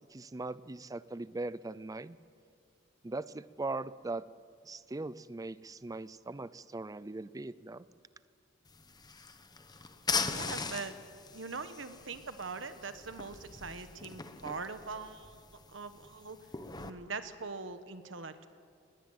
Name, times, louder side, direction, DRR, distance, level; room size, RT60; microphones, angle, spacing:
voice 1, 0.1-2.2 3.0-4.3 4.6-7.9, right 2 dB, 20° right, 17 dB, 0.5 m, -40 dB
sound 1, 8.7-16.9, left 4 dB, 20° left, 1.0 m, -40 dB
voice 2, 10.3-11.0 11.3-16.4 16.8-18.5, right 4 dB, 70° right, 10 dB, 1.2 m, -42 dB
20.5 x 18.0 x 8.0 m, 2.4 s
head